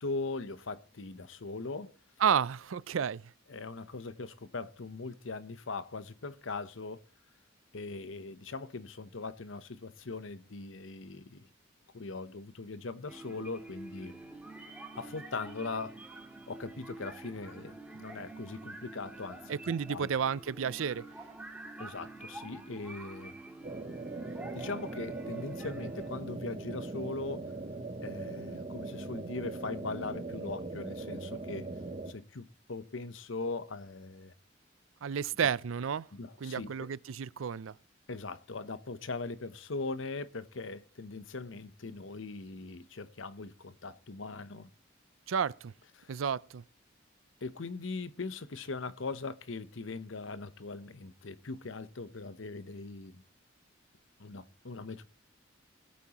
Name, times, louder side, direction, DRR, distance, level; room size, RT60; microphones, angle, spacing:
voice 1, 0.0-1.9 3.5-7.0 7.7-11.5 11.9-14.1 15.0-19.6 19.9-20.1 21.8-23.4 24.5-27.4 28.0-31.7 32.1-34.3 35.4-35.5 36.1-36.9 38.1-44.7 46.0-46.2 47.4-53.2 54.2-55.0, left 3 dB, 75° left, 0.8 m, -40 dB
voice 2, 2.2-3.2 19.5-21.1 35.0-36.1 36.4-37.7 45.3-45.7 46.1-46.6, right 7 dB, 90° right, 0.5 m, -31 dB
sound 1, 13.1-26.1, right 2 dB, 5° right, 1.8 m, -47 dB
sound 2, 23.6-32.1, right 3 dB, 35° right, 0.9 m, -40 dB
21.0 x 8.5 x 3.0 m
head